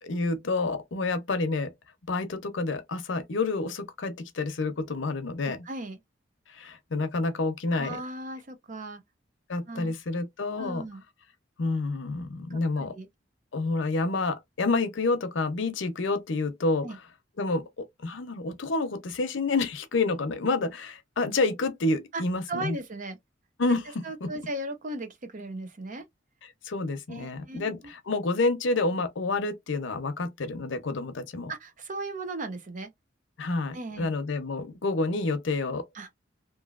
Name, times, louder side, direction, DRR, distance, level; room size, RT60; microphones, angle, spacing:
voice 1, 0.0-1.7 2.1-5.7 6.5-8.0 9.5-10.8 11.6-12.9 13.5-17.0 17.4-22.8 23.6-24.3 26.4-31.5 33.4-35.9, left 3 dB, 85° left, 0.7 m, -29 dB
voice 2, 5.7-6.0 7.7-9.0 9.7-9.9 10.5-11.0 12.5-13.1 16.8-17.0 22.1-22.2 22.5-23.2 24.0-26.0 27.1-27.7 31.5-32.9 33.7-34.1 35.9-36.1, right 2 dB, 45° right, 0.7 m, -37 dB
3.0 x 2.6 x 2.4 m
head